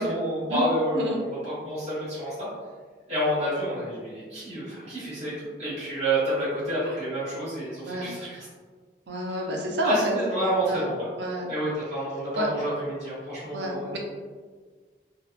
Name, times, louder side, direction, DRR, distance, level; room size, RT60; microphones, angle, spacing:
voice 1, 0.0-2.5 3.1-8.5 9.8-11.1 11.5-13.9, equal, 35° right, -11 dB, 1.3 m, -29 dB
voice 2, 9.1-10.1 10.6-10.9 11.2-11.5 12.4-12.5 13.5-14.0, right 1 dB, 75° right, 0 dB, 0.5 m, -29 dB
2.7 x 2.1 x 2.3 m, 1.5 s
head